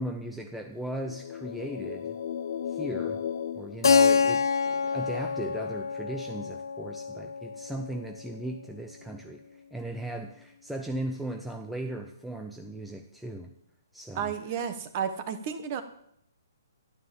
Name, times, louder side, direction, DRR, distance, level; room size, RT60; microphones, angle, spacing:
voice 1, 0.0-2.2 2.7-3.2 3.5-13.5 13.9-14.3, right 1 dB, ahead, 3 dB, 0.6 m, -37 dB
sound 1, 0.8-4.7, left 8 dB, 40° left, 0.5 m, -36 dB
Keyboard (musical), 3.8-8.4, left 5 dB, 80° left, 0.9 m, -26 dB
voice 2, 14.1-15.8, right 8 dB, 25° right, 10 dB, 1.3 m, -32 dB
13.0 x 11.5 x 7.5 m, 0.72 s
hypercardioid pair, 175°, 2 cm